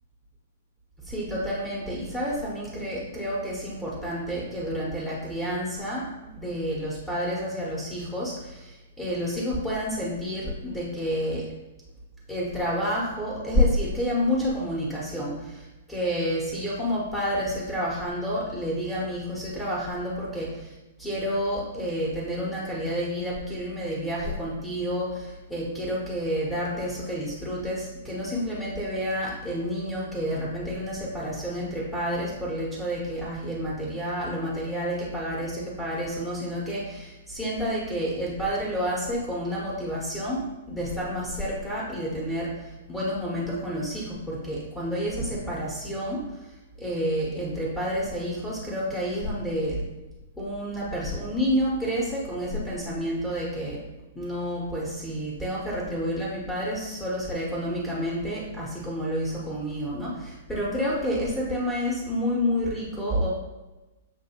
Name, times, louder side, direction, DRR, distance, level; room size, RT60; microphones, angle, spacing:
voice 1, 1.0-11.5 12.3-49.8 50.4-53.8 54.1-63.3, equal, 5° left, -7 dB, 1.0 m, -29 dB
6.7 x 2.6 x 2.9 m, 1.1 s
figure-of-eight pair, 110°, 0 cm